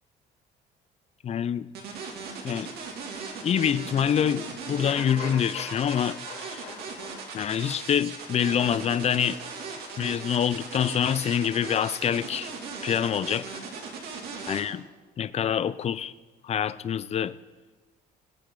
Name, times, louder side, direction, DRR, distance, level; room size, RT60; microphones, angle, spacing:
voice 1, 1.2-1.7 2.4-2.7 3.4-6.8 7.3-9.4 10.0-12.5 12.8-13.6 14.5-14.8 15.2-16.1 16.4-17.3, left 9 dB, 40° left, 17 dB, 0.5 m, -26 dB
sound 1, 1.7-14.6, right 5 dB, 70° right, 2.6 m, -38 dB
sound 2, 4.8-10.7 11.0-11.1, left 5 dB, 70° left, 5.2 m, -45 dB
22.0 x 8.6 x 3.9 m, 1.3 s
cardioid pair, 110°, 17 cm